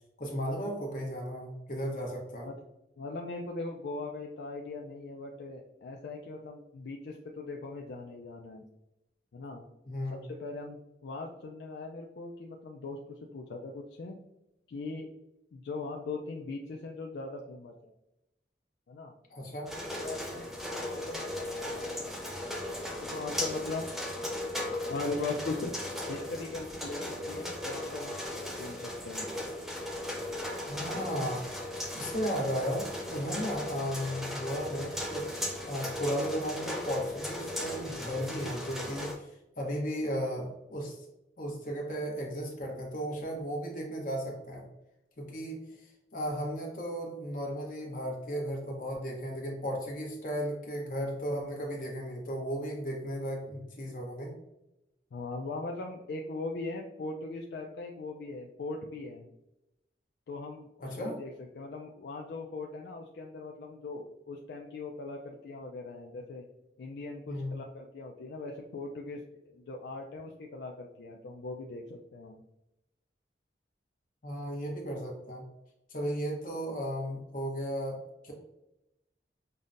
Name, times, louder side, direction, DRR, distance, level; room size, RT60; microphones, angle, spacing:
voice 1, 0.2-2.5 9.9-10.2 19.3-19.7 30.6-31.4 31.9-41.0 41.4-44.6 45.2-45.6 46.1-54.3 60.8-61.1 67.3-67.5 74.2-75.4 75.9-78.3, equal, 50° left, -1 dB, 1.0 m, -35 dB
voice 2, 3.0-8.6 9.3-9.6 10.1-14.2 14.7-15.1 15.5-17.9 18.9-19.1 20.0-22.2 23.0-24.0 24.9-25.7 26.1-28.2 28.5-29.3 30.9-31.0 55.1-59.3 60.3-66.4 66.8-72.4, left 3 dB, 70° left, 1 dB, 0.3 m, -40 dB
sound 1, 19.7-39.2, left 1 dB, ahead, 0.4 m, -37 dB
5.3 x 2.1 x 2.5 m, 0.91 s
head